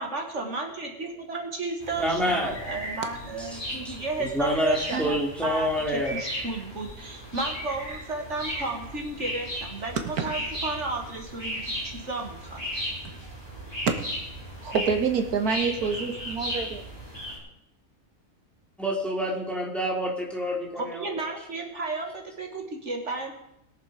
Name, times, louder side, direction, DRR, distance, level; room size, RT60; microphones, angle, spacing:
voice 1, 0.0-12.6 20.8-23.4, right 3 dB, 50° right, 2 dB, 2.1 m, -33 dB
sound 1, 1.8-17.4, equal, 15° left, 5.1 m, -36 dB
voice 2, 2.0-2.5 3.4-3.5 3.8-3.9 4.3-6.2 18.8-21.2, equal, ahead, -2 dB, 3.0 m, -27 dB
voice 3, 14.6-16.8, right 5 dB, 85° right, 6 dB, 1.8 m, -27 dB
21.0 x 7.5 x 5.0 m, 0.80 s
omnidirectional pair, 1.6 m